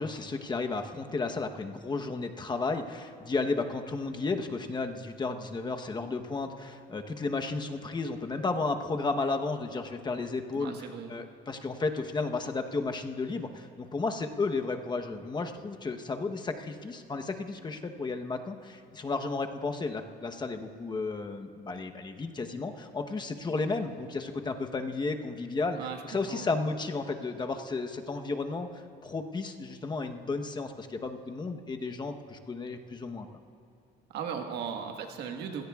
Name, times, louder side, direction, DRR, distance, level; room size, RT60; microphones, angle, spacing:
voice 1, 0.0-10.7 11.1-25.8 26.0-33.3, left 3 dB, 25° left, 5 dB, 1.0 m, -33 dB
voice 2, 10.5-11.2 25.7-26.5 34.1-35.6, right 7 dB, 80° right, 4 dB, 1.5 m, -37 dB
27.0 x 17.0 x 2.4 m, 2.7 s
cardioid pair, 110°, 17 cm